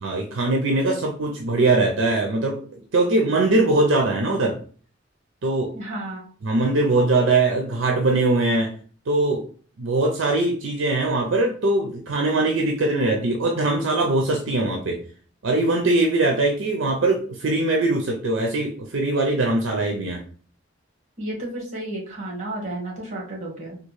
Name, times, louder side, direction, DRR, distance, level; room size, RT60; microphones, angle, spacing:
voice 1, 0.0-4.6 5.4-5.7 6.4-8.7 9.1-9.4 9.8-15.0 15.4-20.2, right 2 dB, 75° right, 1 dB, 0.5 m, -21 dB
voice 2, 5.7-6.2 21.2-23.8, right 1 dB, 40° right, -2 dB, 1.3 m, -32 dB
3.6 x 2.4 x 3.1 m, 0.42 s
head